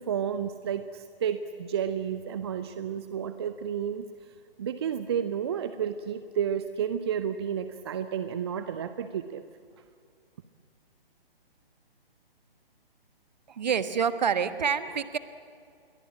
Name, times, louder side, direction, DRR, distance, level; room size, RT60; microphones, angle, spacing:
voice 1, 0.0-9.4, right 8 dB, 25° right, 11 dB, 0.7 m, -31 dB
voice 2, 13.5-15.2, right 7 dB, 45° right, 12 dB, 1.4 m, -27 dB
28.5 x 22.5 x 9.0 m, 2.4 s
figure-of-eight pair, 135°, 30 cm